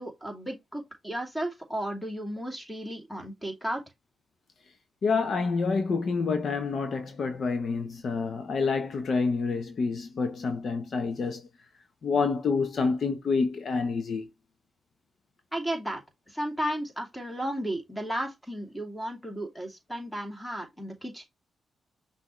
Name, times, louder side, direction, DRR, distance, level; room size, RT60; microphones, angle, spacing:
voice 1, 0.0-3.8 15.5-16.0 16.3-21.2, right 1 dB, 5° left, 2.4 m, -34 dB
voice 2, 5.0-11.5 12.0-14.3, left 4 dB, 60° left, 0.8 m, -28 dB
5.8 x 2.8 x 3.1 m
cardioid pair, 70°, 0 cm